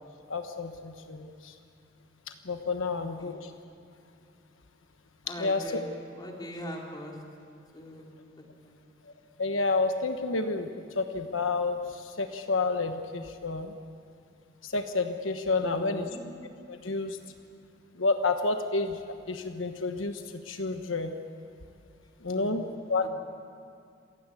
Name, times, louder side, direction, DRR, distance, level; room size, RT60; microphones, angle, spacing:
voice 1, 0.3-1.5 2.4-3.5 5.4-5.6 9.4-10.7 10.9-13.7 14.6-16.1 16.7-17.2 17.9-19.0 19.3-21.1 22.2-23.1, left 3 dB, 85° left, 6 dB, 1.2 m, -30 dB
voice 2, 2.9-3.4 5.2-5.8 6.1-7.2 7.7-8.1 8.6-8.8 15.6-16.3 22.3-22.7 23.0-23.1, equal, 20° left, 0 dB, 3.3 m, -41 dB
27.5 x 16.0 x 8.5 m, 2.4 s
head